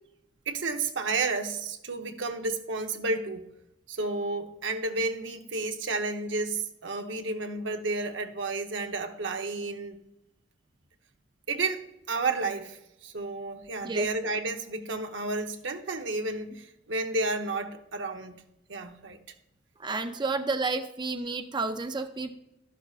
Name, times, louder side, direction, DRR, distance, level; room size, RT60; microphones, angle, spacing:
voice 1, 0.5-3.5 3.9-10.0 11.5-18.4 18.7-19.2, right 3 dB, 85° right, 1.0 m, -31 dB
voice 2, 19.8-22.4, right 3 dB, 25° right, 0.5 m, -31 dB
12.5 x 11.5 x 2.5 m
head